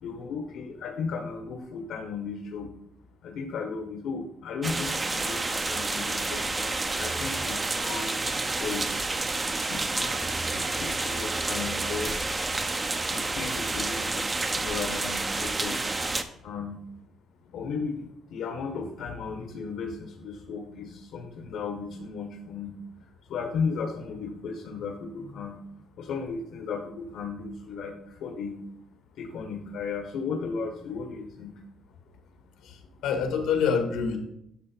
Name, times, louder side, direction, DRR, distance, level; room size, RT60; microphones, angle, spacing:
voice 1, 0.0-2.7 3.2-6.4 7.0-9.0 9.7-12.1 13.1-15.8 16.4-16.8 17.5-22.8 23.3-25.6 26.0-28.6 29.2-31.6, left 5 dB, 60° left, 2 dB, 1.4 m, -35 dB
sound 1, 4.6-16.2, right 3 dB, 15° right, 0.6 m, -29 dB
voice 2, 32.6-34.2, left 6 dB, 80° left, 4 dB, 2.1 m, -26 dB
11.0 x 6.3 x 4.6 m, 0.77 s
cardioid pair, 180°, 0 cm